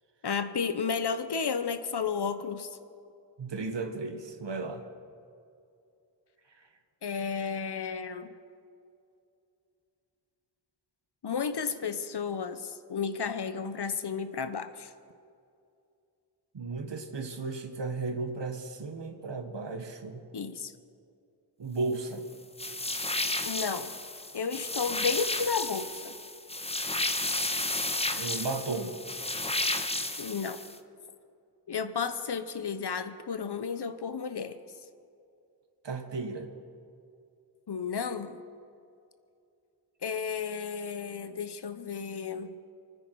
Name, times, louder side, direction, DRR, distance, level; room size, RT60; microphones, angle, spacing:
voice 1, 0.2-2.7 7.0-8.3 11.2-14.9 20.3-20.7 23.4-23.9 24.3-26.1 30.2-30.7 31.7-34.6 37.7-38.4 40.0-42.6, left 6 dB, 70° left, 11 dB, 1.0 m, -32 dB
voice 2, 3.4-4.8 16.5-20.2 21.6-22.2 28.1-28.9 35.8-36.5, right 3 dB, 85° right, 6 dB, 1.6 m, -34 dB
sound 1, 22.6-30.8, left 2 dB, 15° left, 0.9 m, -32 dB
29.0 x 9.9 x 4.7 m, 2.5 s
wide cardioid pair, 90°, 42 cm